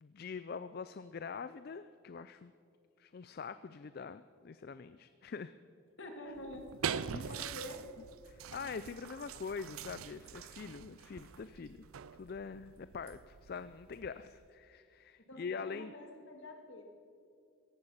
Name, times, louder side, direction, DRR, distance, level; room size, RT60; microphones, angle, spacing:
voice 1, 0.0-2.5 3.0-5.5 7.1-7.3 8.3-11.8 12.1-15.9, left 5 dB, 45° left, 13 dB, 0.4 m, -44 dB
voice 2, 6.0-7.0 7.3-7.8 15.3-16.8, left 1 dB, 65° left, 3 dB, 2.2 m, -47 dB
sound 1, 6.4-14.4, right 7 dB, 90° right, 0.5 m, -44 dB
17.0 x 14.5 x 5.6 m, 2.4 s
head